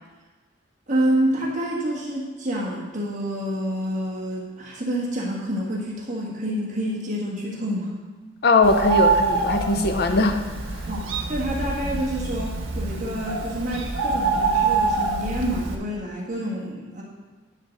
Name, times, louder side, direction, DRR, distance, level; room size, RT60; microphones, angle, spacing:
voice 1, 0.9-7.9 10.9-17.0, equal, 40° right, -4 dB, 1.5 m, -28 dB
voice 2, 8.4-10.4 10.7-10.9, left 3 dB, 55° left, 6 dB, 0.5 m, -20 dB
Bird, 8.6-15.7, right 4 dB, 90° right, 1.0 m, -25 dB
10.5 x 3.8 x 6.3 m, 1.3 s
head